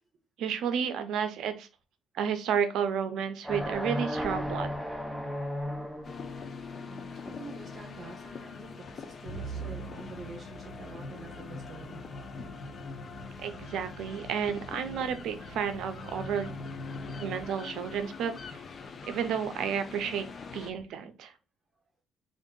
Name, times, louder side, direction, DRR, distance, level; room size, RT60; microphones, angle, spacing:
voice 1, 0.4-1.7 2.1-4.7 13.4-16.6 17.2-18.6 19.1-20.3 20.5-21.3, right 7 dB, 80° right, 10 dB, 0.5 m, -31 dB
sound 1, 3.4-6.3, equal, 5° right, 0.7 m, -34 dB
sound 2, 6.0-20.7, left 4 dB, 40° left, 0.5 m, -43 dB
voice 2, 6.8-12.0 16.8-17.4, right 3 dB, 35° right, 1 dB, 1.0 m, -47 dB
Musical instrument, 9.3-17.8, right 1 dB, 90° left, 0.9 m, -44 dB
3.5 x 2.5 x 3.7 m, 0.30 s
cardioid pair, 105°, 0 cm